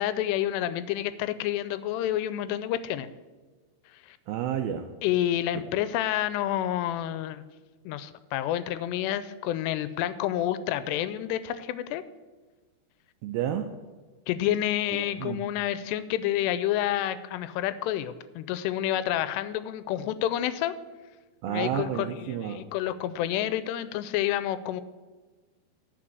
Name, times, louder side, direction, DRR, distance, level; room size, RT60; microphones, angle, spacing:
voice 1, 0.0-3.1 4.1-4.2 5.0-7.4 7.9-12.0 14.3-20.7 21.5-24.8, left 12 dB, 85° left, 14 dB, 2.6 m, -29 dB
voice 2, 4.3-4.9 5.6-5.7 13.2-13.7 14.9-15.4 21.4-22.6, right 10 dB, 90° right, 6 dB, 2.2 m, -31 dB
10.0 x 6.0 x 7.7 m, 1.3 s
omnidirectional pair, 4.9 m